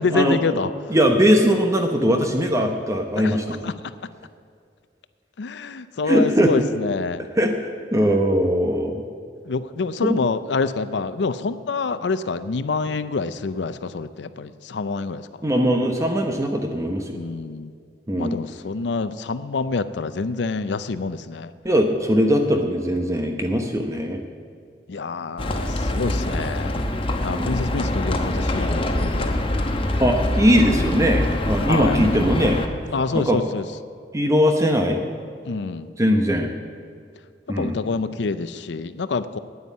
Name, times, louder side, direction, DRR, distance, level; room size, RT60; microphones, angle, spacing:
voice 1, 0.0-1.0 3.2-3.7 5.4-7.3 7.9-8.2 9.5-15.3 17.1-17.7 18.2-21.5 23.2-23.7 24.9-26.8 27.2-29.4 30.6-30.8 31.7-32.0 32.9-33.7 35.4-35.9 37.6-39.4, left 4 dB, 70° left, 13 dB, 0.5 m, -27 dB
voice 2, 0.9-3.6 6.1-6.5 7.4-7.5 7.9-9.0 10.0-10.2 15.4-17.2 18.1-18.4 21.6-24.2 27.3-27.5 30.0-32.6 33.1-33.4 34.1-35.0 36.0-36.5 37.5-37.8, equal, 20° right, 4 dB, 0.9 m, -20 dB
Livestock farm animals working animals, 25.4-32.7, left 1 dB, 30° left, 1.1 m, -24 dB
9.6 x 9.5 x 8.4 m, 2.3 s
head